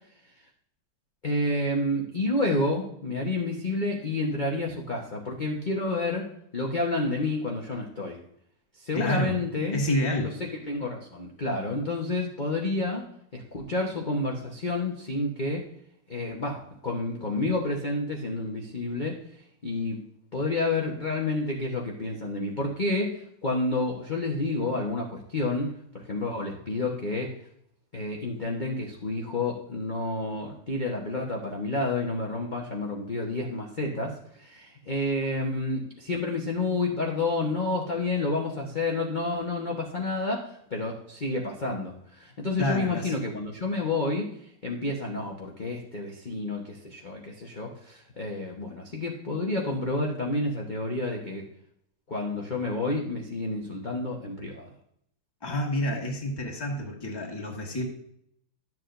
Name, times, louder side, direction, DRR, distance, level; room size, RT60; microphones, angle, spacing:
voice 1, 1.2-8.2 8.8-9.8 10.7-13.0 13.3-15.6 16.1-19.2 19.6-20.0 20.3-27.3 27.9-44.3 44.6-51.4 52.1-54.7, left 2 dB, 40° left, -1 dB, 0.6 m, -29 dB
voice 2, 8.9-9.4 9.7-10.3 42.6-43.1 55.4-57.9, left 1 dB, 15° left, -1 dB, 1.3 m, -28 dB
12.0 x 7.5 x 2.5 m, 0.71 s
omnidirectional pair, 2.4 m